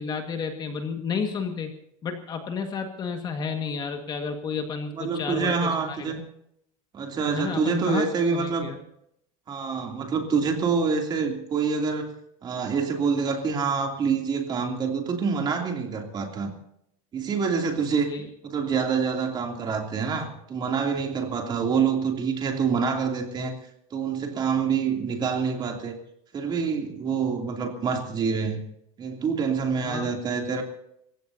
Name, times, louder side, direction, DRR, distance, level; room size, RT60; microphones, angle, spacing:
voice 1, 0.0-1.7 2.0-6.1 7.3-8.0 8.3-8.8 18.1-18.3 29.8-30.1, left 5 dB, 25° left, 5 dB, 1.8 m, -31 dB
voice 2, 5.0-6.2 6.9-8.7 9.5-12.1 12.4-16.5 17.1-18.1 18.4-23.5 23.9-26.0 26.3-28.6 29.0-30.6, right 5 dB, 25° right, 2 dB, 2.9 m, -26 dB
29.0 x 16.0 x 2.8 m, 0.76 s
supercardioid pair, 155°, 18 cm